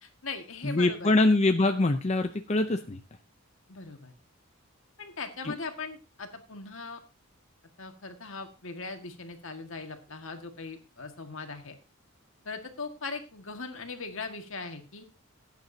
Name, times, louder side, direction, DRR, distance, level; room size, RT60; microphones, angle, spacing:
voice 1, 0.0-1.1 3.7-4.1 5.0-7.0 7.8-11.8 12.5-15.1, left 4 dB, 65° left, 5 dB, 1.8 m, -40 dB
voice 2, 0.6-3.0 5.4-5.5, left 2 dB, 30° left, 7 dB, 0.6 m, -24 dB
16.5 x 9.2 x 2.8 m, 0.30 s
head